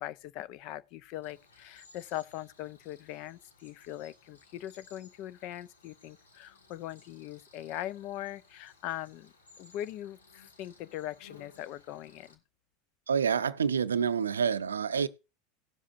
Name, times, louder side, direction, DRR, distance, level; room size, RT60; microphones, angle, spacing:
voice 1, 0.0-12.4, left 13 dB, 55° left, 0.5 m, -41 dB
Cricket, 1.2-12.3, left 3 dB, 85° left, 1.5 m, -60 dB
voice 2, 13.1-15.1, right 6 dB, 85° right, 0.5 m, -28 dB
18.0 x 7.3 x 2.5 m
hypercardioid pair, 85°, 0 cm